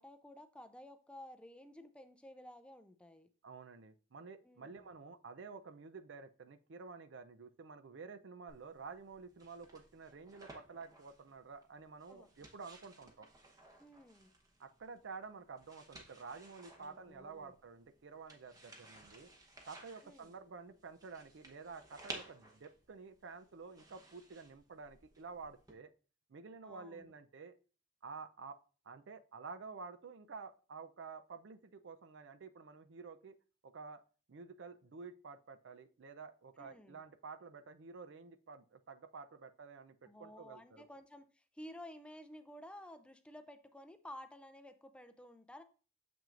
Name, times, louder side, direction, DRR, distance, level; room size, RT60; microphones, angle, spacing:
voice 1, 0.0-3.3 4.4-4.8 12.1-12.3 13.8-14.3 16.8-17.5 20.0-20.3 26.6-27.1 36.6-37.0 40.1-45.6, left 1 dB, 5° left, 8 dB, 0.4 m, -53 dB
voice 2, 3.4-13.3 14.6-19.3 19.7-25.9 26.3-27.6 28.0-28.6 28.9-33.4 33.6-34.0 34.3-40.9, right 4 dB, 70° right, 11 dB, 0.5 m, -51 dB
sound 1, 8.5-25.7, right 2 dB, 20° right, 0.9 m, -57 dB
6.9 x 6.0 x 2.5 m, 0.38 s
head